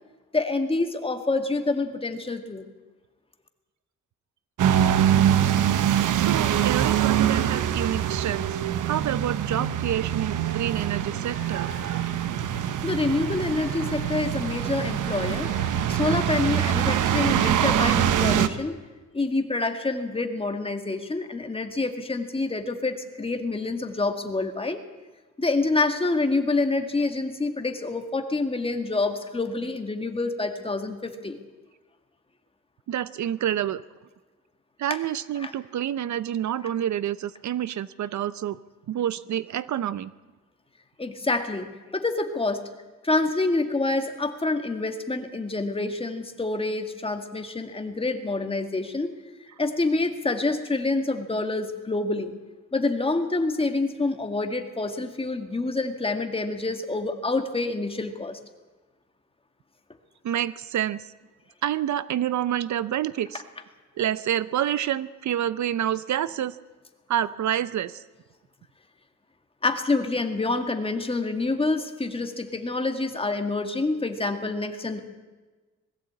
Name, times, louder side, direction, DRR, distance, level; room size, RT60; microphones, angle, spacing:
voice 1, 0.3-2.6 12.8-15.5 15.9-18.8 19.1-24.8 25.4-31.4 34.9-35.0 35.4-35.5 41.0-41.7 41.9-42.6 43.0-49.1 49.6-52.3 52.7-58.4 69.6-75.0, left 3 dB, 20° left, 6 dB, 1.9 m, -27 dB
sound 1, 4.6-18.5, right 10 dB, 90° right, 1.0 m, -24 dB
voice 2, 4.9-8.6 8.8-12.1 16.8-17.4 32.9-33.8 34.8-38.6 38.9-40.1 60.2-61.0 61.6-63.4 64.0-66.6 67.1-68.0, right 11 dB, 70° right, 16 dB, 0.7 m, -28 dB
Wind instrument woodwind instrument, 11.3-17.0, left 6 dB, 45° left, 2.5 m, -47 dB
20.5 x 15.0 x 8.6 m, 1.3 s
cardioid pair, 125°, 30 cm